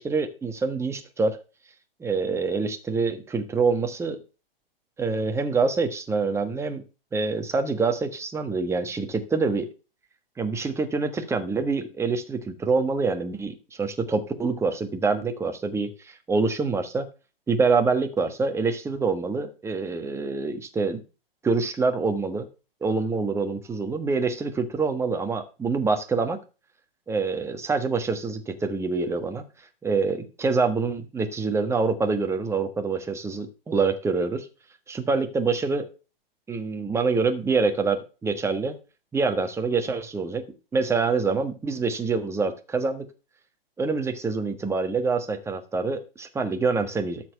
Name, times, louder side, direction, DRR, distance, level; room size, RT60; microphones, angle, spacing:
voice 1, 0.0-1.4 2.0-4.2 5.0-6.8 7.1-9.7 10.4-17.1 17.5-21.0 21.4-22.5 22.8-26.4 27.1-29.4 29.8-34.5 34.9-35.9 36.5-38.8 39.1-40.4 40.7-43.0 43.8-47.3, right 4 dB, 10° right, 7 dB, 1.3 m, -26 dB
12.5 x 4.3 x 6.7 m, 0.33 s
hypercardioid pair, 120°, 30 cm